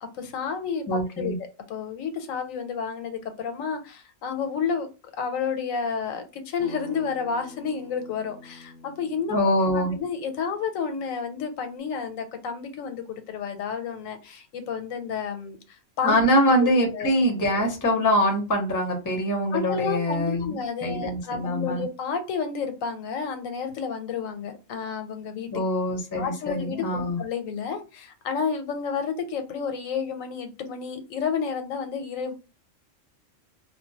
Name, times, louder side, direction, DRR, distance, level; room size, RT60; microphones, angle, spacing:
voice 1, 0.1-1.4 1.7-4.9 5.2-9.4 9.7-16.2 16.6-16.7 16.9-17.1 19.5-25.5 26.2-32.3, left 6 dB, 85° left, 7 dB, 1.0 m, -31 dB
voice 2, 0.9-1.4 9.3-9.9 16.0-21.8 25.5-27.2, equal, 20° left, 2 dB, 0.6 m, -24 dB
Acoustic guitar, 6.6-11.8, left 3 dB, 55° left, 0.8 m, -48 dB
2.3 x 2.1 x 3.9 m, 0.30 s
omnidirectional pair, 1.3 m